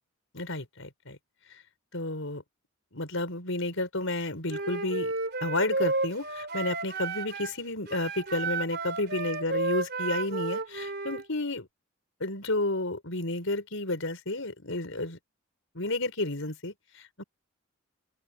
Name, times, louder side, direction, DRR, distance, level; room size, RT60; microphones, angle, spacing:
voice 1, 0.3-1.2 1.9-2.4 2.9-5.1 5.4-11.7 12.2-15.2 15.7-17.2, left 2 dB, 70° left, 5.0 m, -31 dB
Wind instrument woodwind instrument, 4.5-7.6 7.9-11.3, right 3 dB, 50° right, 4.2 m, -32 dB
open air
head